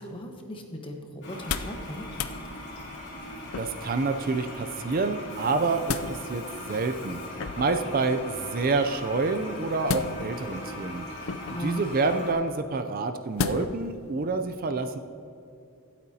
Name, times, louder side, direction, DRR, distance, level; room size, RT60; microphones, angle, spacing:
voice 1, 0.0-2.1 11.5-12.0, equal, 25° left, 3 dB, 1.1 m, -37 dB
Toilet flush, 1.2-12.3, left 1 dB, 50° left, 2.9 m, -40 dB
sound 1, 1.3-1.8 2.1-2.4 3.5-4.0 5.4-6.1 7.4-7.8 9.8-10.5 11.2-11.7 13.4-13.9 14.3-14.4, left 5 dB, 65° left, 0.5 m, -32 dB
voice 2, 3.6-7.2 7.6-11.0 11.6-15.0, right 3 dB, 40° right, 8 dB, 0.4 m, -28 dB
24.5 x 8.5 x 2.8 m, 2.7 s
head